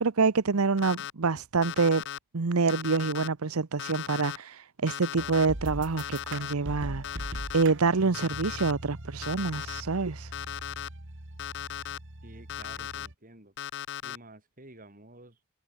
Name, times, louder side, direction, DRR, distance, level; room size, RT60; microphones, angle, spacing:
voice 1, 0.0-2.0 2.3-10.3, right 4 dB, 75° right, 0.9 m, -27 dB
Alarm, 0.8-1.1 1.6-2.2 2.7-3.3 3.8-4.4 4.9-5.5 6.0-6.5 7.0-7.6 8.1-8.7 9.2-9.8 10.3-10.9 11.4-12.0 12.5-13.1 13.6-14.2, left 10 dB, 55° left, 0.5 m, -37 dB
sound 1, 5.2-13.1, right 1 dB, 55° right, 2.9 m, -41 dB
voice 2, 12.2-13.6 14.0-15.5, right 2 dB, 40° right, 5.4 m, -51 dB
head